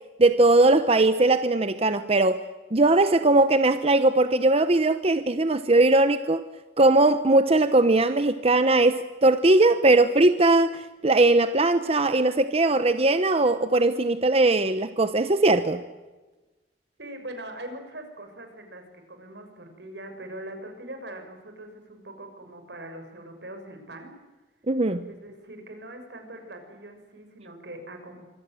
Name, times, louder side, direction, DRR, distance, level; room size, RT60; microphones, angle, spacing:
voice 1, 0.2-2.4 2.7-6.4 6.8-15.8 24.7-25.1, right 2 dB, 35° right, 10 dB, 1.0 m, -20 dB
voice 2, 17.0-24.1 25.0-28.3, right 1 dB, 80° right, 5 dB, 6.5 m, -42 dB
25.5 x 25.5 x 7.8 m, 1.2 s
head